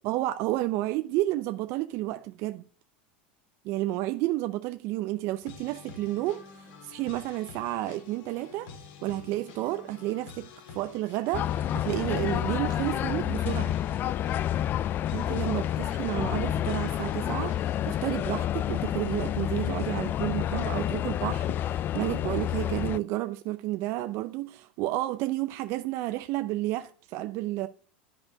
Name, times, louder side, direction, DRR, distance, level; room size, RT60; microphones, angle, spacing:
voice 1, 0.0-2.6 3.6-8.7 9.0-10.5 10.7-11.5 11.7-13.8 15.1-27.7, right 16 dB, 55° right, 0.5 m, -31 dB
sound 1, 5.4-18.3, left 5 dB, 70° left, 1.9 m, -48 dB
sound 2, 11.3-23.0, left 11 dB, 40° left, 0.4 m, -29 dB
10.5 x 5.3 x 5.1 m
hypercardioid pair, 105°, 5 cm